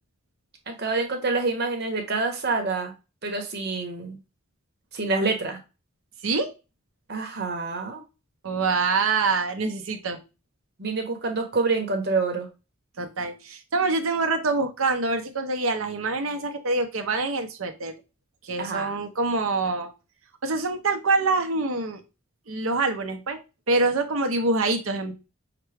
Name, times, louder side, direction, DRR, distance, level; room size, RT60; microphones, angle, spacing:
voice 1, 0.7-2.9 3.2-4.2 4.9-5.6 7.1-8.0 10.8-12.5 18.6-19.0, right 3 dB, 50° right, 4 dB, 1.0 m, -27 dB
voice 2, 8.4-10.2 13.0-17.9 18.4-19.9 20.4-22.0 22.5-23.4 23.7-25.1, right 3 dB, 80° right, 6 dB, 0.8 m, -25 dB
5.8 x 2.2 x 3.3 m, 0.29 s
head